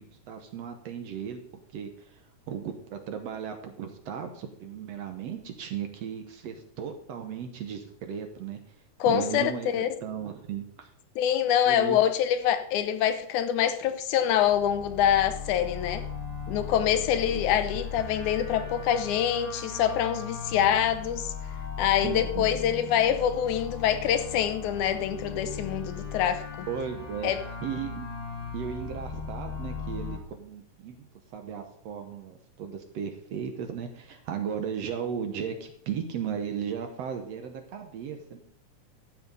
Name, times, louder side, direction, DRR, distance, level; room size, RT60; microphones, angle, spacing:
voice 1, 0.0-1.4 1.7-8.6 9.1-10.9 11.7-12.0 17.3-17.6 22.0-22.6 26.7-27.3 27.6-28.1 28.5-38.4, right 7 dB, 65° right, 1.8 m, -36 dB
voice 2, 9.0-9.9 11.2-16.0 16.5-21.3 21.8-26.7 27.2-27.4, left 10 dB, 75° left, 2.1 m, -25 dB
sound 1, 14.3-30.2, left 5 dB, 30° left, 0.7 m, -38 dB
12.5 x 7.6 x 5.4 m
omnidirectional pair, 3.6 m